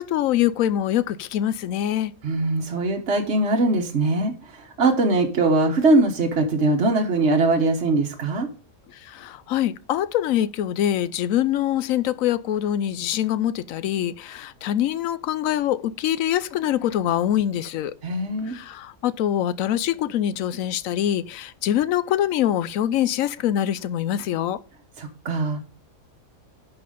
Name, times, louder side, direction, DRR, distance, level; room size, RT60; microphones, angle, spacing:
voice 1, 0.0-2.1 9.0-18.0 18.5-24.6, left 11 dB, 80° left, 1.0 m, -24 dB
voice 2, 2.2-8.5 18.0-18.5 25.0-25.6, right 2 dB, 55° right, 1.4 m, -21 dB
10.5 x 4.8 x 5.0 m
omnidirectional pair, 1.4 m